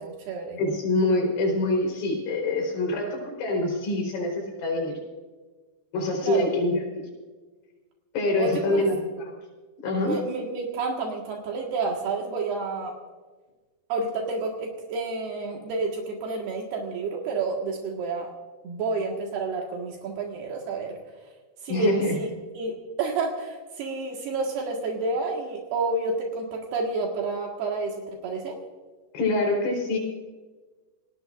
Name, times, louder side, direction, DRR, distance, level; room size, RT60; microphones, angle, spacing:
voice 1, 0.0-0.6 6.2-6.5 8.4-8.9 10.0-12.9 13.9-18.3 18.6-21.0 21.6-22.3 22.6-28.6, right 3 dB, 75° right, 0 dB, 3.6 m, -30 dB
voice 2, 0.6-4.9 5.9-6.8 8.1-9.3 9.8-10.2 21.7-22.1 29.1-30.0, left 2 dB, 85° left, 1 dB, 6.1 m, -25 dB
27.5 x 19.0 x 2.5 m, 1.3 s
omnidirectional pair, 4.7 m